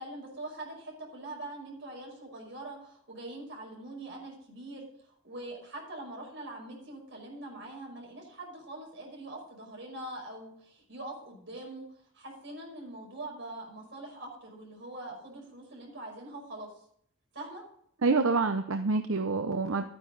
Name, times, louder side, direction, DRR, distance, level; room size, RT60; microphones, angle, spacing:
voice 1, 0.0-4.9 5.2-11.9 12.1-16.7 17.3-17.6, right 2 dB, 60° right, -1 dB, 5.6 m, -43 dB
voice 2, 18.0-19.9, right 3 dB, 80° right, 7 dB, 0.8 m, -27 dB
13.0 x 9.7 x 4.0 m, 0.66 s
head